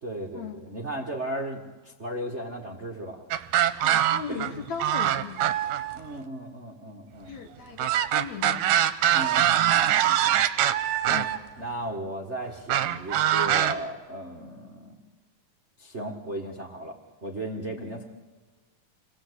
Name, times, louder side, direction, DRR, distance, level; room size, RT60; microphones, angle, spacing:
voice 1, 0.0-3.2 4.3-4.6 5.9-7.4 9.1-10.4 11.1-11.2 11.6-15.0 15.8-18.0, right 1 dB, 30° right, 2 dB, 1.3 m, -36 dB
sound 1, 3.3-4.5 4.8-6.0 7.8-11.4 12.7-13.7, right 11 dB, 70° right, 2.2 m, -23 dB
voice 2, 3.8-5.7 7.3-8.8 11.0-11.3 17.8-17.9, left 7 dB, 65° left, 6 dB, 2.3 m, -38 dB
28.5 x 19.5 x 8.3 m, 1.3 s
omnidirectional pair, 4.0 m